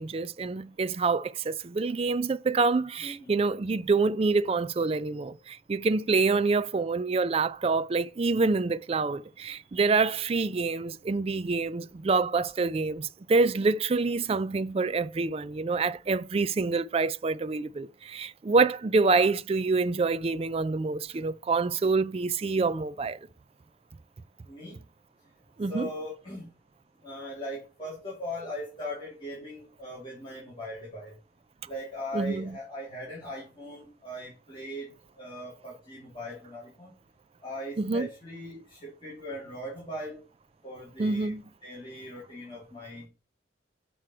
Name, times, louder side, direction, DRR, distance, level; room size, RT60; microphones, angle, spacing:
voice 1, 0.0-23.2 25.6-25.9 32.1-32.5 37.8-38.1 41.0-41.4, right 4 dB, 30° right, 0.3 m, -26 dB
voice 2, 3.0-3.4 6.2-6.4 24.5-24.8 25.6-26.5 27.0-31.1 31.7-36.9 37.4-40.2 40.6-41.3 41.6-43.1, left 1 dB, 25° left, 3.0 m, -39 dB
7.6 x 5.0 x 4.3 m
head